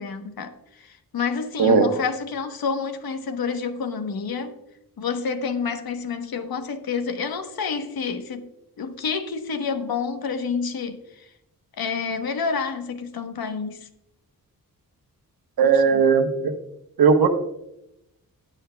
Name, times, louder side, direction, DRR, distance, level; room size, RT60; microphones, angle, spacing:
voice 1, 0.0-4.6 5.0-8.5 8.8-11.3 11.8-13.9 15.9-16.0, left 5 dB, 80° left, 1.1 m, -29 dB
voice 2, 15.6-16.5 17.0-17.3, right 5 dB, 80° right, 1.3 m, -17 dB
19.5 x 6.5 x 2.3 m
wide cardioid pair, 135°, 36 cm